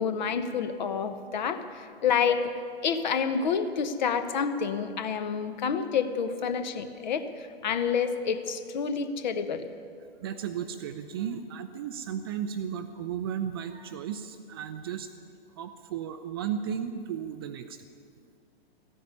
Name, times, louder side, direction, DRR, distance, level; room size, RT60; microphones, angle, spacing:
voice 1, 0.0-2.5 2.8-9.6, left 6 dB, 45° left, 10 dB, 1.2 m, -28 dB
voice 2, 10.2-15.1 15.6-17.8, right 8 dB, 25° right, 9 dB, 0.5 m, -34 dB
14.5 x 9.9 x 9.7 m, 2.3 s
figure-of-eight pair, 120°, 32 cm